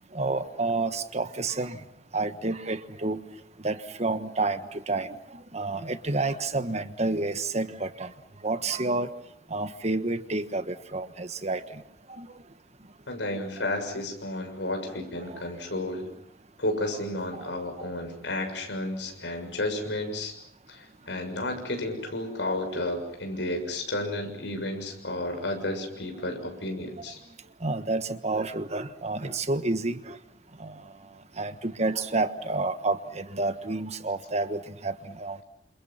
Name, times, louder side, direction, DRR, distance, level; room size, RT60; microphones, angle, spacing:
voice 1, 0.1-1.8 2.1-3.2 3.6-8.1 8.4-9.1 9.5-11.8 12.2-12.3 13.6-13.7 15.2-15.7 17.4-17.5 27.6-30.2 30.6-30.7 31.4-35.4, right 2 dB, 40° right, 10 dB, 1.4 m, -30 dB
voice 2, 13.1-16.1 16.6-20.3 20.7-27.2, left 1 dB, 85° left, 5 dB, 6.8 m, -32 dB
29.5 x 27.5 x 5.8 m, 0.72 s
head